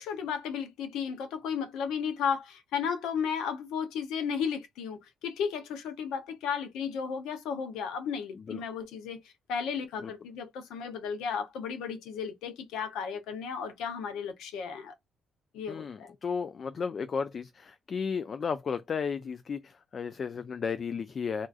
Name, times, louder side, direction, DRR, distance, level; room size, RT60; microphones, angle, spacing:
voice 1, 0.0-9.2 9.5-14.9 15.5-16.2, left 7 dB, 90° left, 0.6 m, -34 dB
voice 2, 15.7-21.5, left 6 dB, 45° left, 0.3 m, -34 dB
3.6 x 2.5 x 2.3 m
cardioid pair, 90°, 0 cm